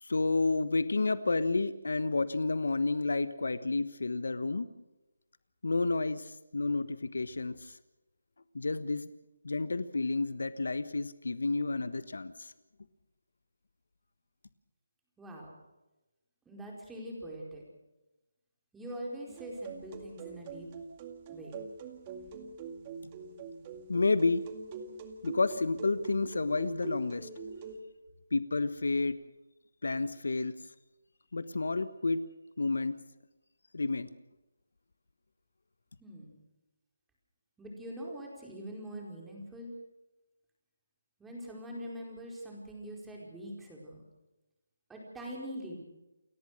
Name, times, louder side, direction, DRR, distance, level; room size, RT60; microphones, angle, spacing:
voice 1, 0.0-4.7 5.6-7.7 8.5-9.1 9.4-12.5 23.9-24.4 25.2-27.3 28.3-29.2 29.8-30.5 31.3-32.2 32.6-33.0 33.7-34.1, left 3 dB, 75° left, 14 dB, 1.2 m, -30 dB
voice 2, 15.2-15.5 16.5-17.6 18.7-20.7 21.3-21.5 36.0-36.4 37.6-39.8 41.2-44.0 44.9-45.8, equal, 5° right, -2 dB, 4.7 m, -43 dB
sound 1, 19.3-27.8, right 4 dB, 25° right, 2.1 m, -44 dB
29.5 x 14.5 x 6.6 m, 1.0 s
figure-of-eight pair, 160°, 0 cm